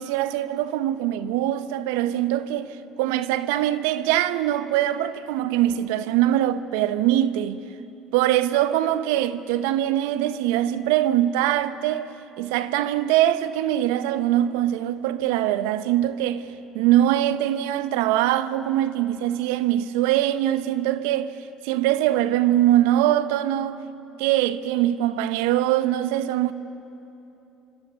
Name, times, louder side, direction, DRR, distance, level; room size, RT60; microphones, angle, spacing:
voice 1, 0.0-7.6 8.1-12.1 12.4-16.5 16.7-21.3 21.6-23.8 24.2-26.5, right 13 dB, 75° right, 0.9 m, -22 dB
27.0 x 25.0 x 6.7 m
hypercardioid pair, 60°, 0 cm